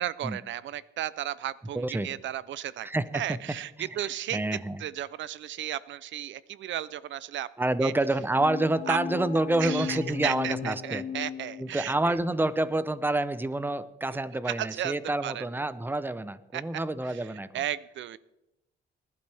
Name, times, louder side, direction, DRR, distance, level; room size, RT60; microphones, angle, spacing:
voice 1, 0.0-2.9 3.1-4.4 4.8-7.5 7.8-7.9 8.9-9.0 9.6-12.1 14.5-15.4 16.5-16.6 17.1-17.2 17.5-18.2, right 12 dB, 70° right, 18 dB, 0.6 m, -34 dB
voice 2, 1.7-2.1 2.8-3.4 3.8-4.8 7.6-11.0 11.6-17.5, right 2 dB, 10° right, 15 dB, 0.8 m, -28 dB
sound 1, 8.3-12.1, left 7 dB, 40° left, 0.9 m, -36 dB
19.5 x 12.0 x 3.5 m, 0.92 s
cardioid pair, 90°, 20 cm